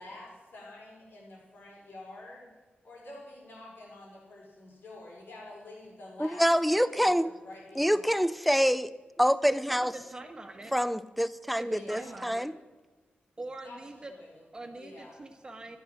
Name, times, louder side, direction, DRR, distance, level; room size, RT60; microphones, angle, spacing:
voice 1, 0.0-2.5 2.8-6.5 6.7-8.2 11.6-12.2 13.6-13.8 14.1-14.4 14.7-15.1, left 2 dB, 75° left, -3 dB, 5.2 m, -48 dB
voice 2, 6.2-7.3 7.8-8.9 9.2-9.9 10.7-12.5, equal, ahead, 15 dB, 0.4 m, -26 dB
voice 3, 9.5-10.7 11.6-12.5 13.4-14.1 14.5-15.8, right 2 dB, 25° right, 5 dB, 1.4 m, -43 dB
13.5 x 11.5 x 6.1 m, 1.2 s
wide cardioid pair, 160°, 4 cm